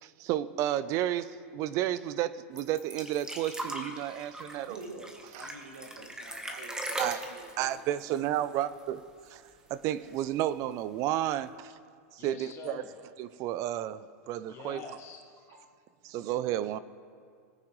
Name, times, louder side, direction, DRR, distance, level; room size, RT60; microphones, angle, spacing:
voice 1, 0.0-4.8 5.4-5.5 6.5-6.6 7.0-7.3 7.6-9.4 9.7-11.7 12.1-12.8 13.2-14.8 16.0-16.8, right 12 dB, 45° right, 16 dB, 0.5 m, -32 dB
sound 1, 2.6-9.0 9.3-9.4 9.7-10.4 11.2-11.3, right 1 dB, 10° right, 1.2 m, -39 dB
voice 2, 4.6-7.8, right 3 dB, 85° right, 1 dB, 2.0 m, -47 dB
voice 3, 12.2-12.9 14.5-15.8, left 5 dB, 35° left, 2 dB, 1.6 m, -46 dB
19.5 x 8.7 x 3.2 m, 2.3 s
hypercardioid pair, 125°, 8 cm